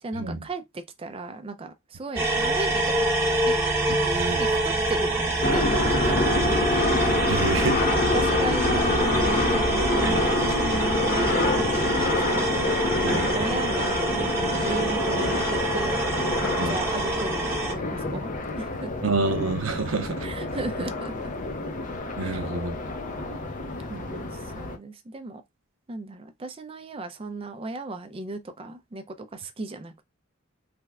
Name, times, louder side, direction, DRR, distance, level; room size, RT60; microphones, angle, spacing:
voice 1, 0.0-3.1 3.4-3.5 3.9-6.7 7.2-12.7 13.1-16.1 16.4-18.9 20.2-21.3 22.2-22.4 23.3-23.5 23.9-25.4 25.9-30.0, right 2 dB, 25° right, 0.4 m, -36 dB
sound 1, 2.2-17.7, right 2 dB, 10° right, 1.0 m, -26 dB
sound 2, 5.4-24.8, left 2 dB, 40° left, 0.6 m, -27 dB
voice 2, 7.3-7.8 10.0-10.2 13.0-13.3 16.6-16.8 19.0-20.3 22.2-22.8, right 3 dB, 75° right, 0.7 m, -28 dB
sound 3, 12.6-17.7, left 4 dB, 80° left, 0.7 m, -42 dB
3.4 x 2.1 x 3.5 m
head